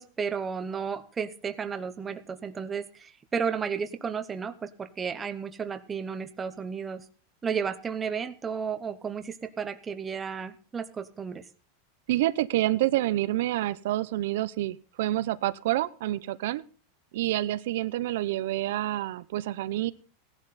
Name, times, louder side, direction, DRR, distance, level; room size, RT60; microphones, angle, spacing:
voice 1, 0.0-7.0 7.4-11.4, right 6 dB, 10° right, 9 dB, 0.9 m, -33 dB
voice 2, 12.1-16.6 17.1-19.9, right 15 dB, 60° right, 14 dB, 0.7 m, -28 dB
17.0 x 11.5 x 4.1 m, 0.36 s
supercardioid pair, 175°, 0 cm